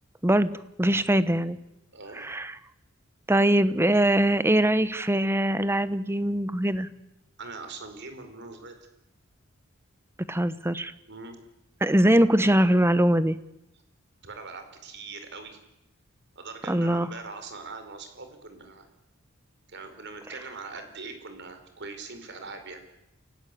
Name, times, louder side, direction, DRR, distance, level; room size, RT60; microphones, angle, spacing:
voice 1, 0.8-1.6 2.2-2.6 3.3-6.9 10.3-10.9 11.8-13.4 16.7-17.1, right 1 dB, 10° right, 14 dB, 1.0 m, -22 dB
voice 2, 1.9-2.3 7.4-8.9 11.1-11.4 14.2-15.6 16.3-18.9 19.7-22.8, right 4 dB, 55° right, 7 dB, 4.6 m, -41 dB
29.0 x 17.0 x 8.5 m, 0.87 s
head